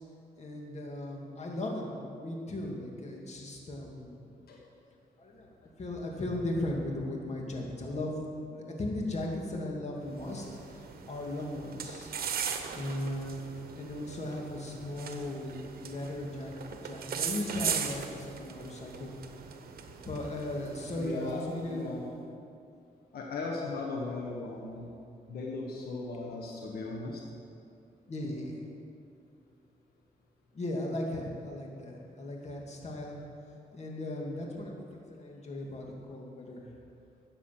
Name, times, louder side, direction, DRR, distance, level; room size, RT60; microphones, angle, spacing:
voice 1, 0.4-4.3 5.2-8.1 8.4-12.1 12.7-19.1 20.1-22.0 28.1-28.5 30.5-33.2 33.7-36.6, left 1 dB, 45° left, -1 dB, 2.4 m, -37 dB
sound 1, 10.1-21.8, right 7 dB, 75° right, 1.0 m, -39 dB
voice 2, 20.9-21.4 21.7-22.1 23.1-24.9 25.3-27.2 28.2-28.3, left 3 dB, 85° left, -1 dB, 1.5 m, -37 dB
13.5 x 8.4 x 6.0 m, 2.5 s
cardioid pair, 85°, 16 cm